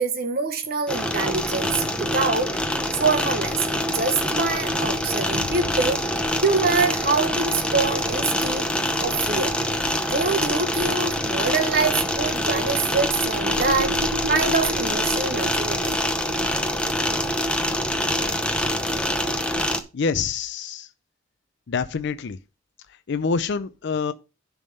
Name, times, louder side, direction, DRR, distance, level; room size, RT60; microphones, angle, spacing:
voice 1, 0.0-1.7 2.0-2.6 2.9-6.0 6.4-8.6 9.0-9.5 10.1-14.0 14.3-16.0, right 4 dB, 50° right, 1.2 m, -25 dB
sound 1, 0.9-19.8, left 1 dB, 5° left, 0.8 m, -25 dB
sound 2, 13.0-16.7, equal, 70° right, 1.3 m, -35 dB
voice 2, 19.9-20.9 21.7-22.4 23.1-24.1, left 5 dB, 60° left, 0.4 m, -26 dB
10.5 x 3.6 x 5.4 m
head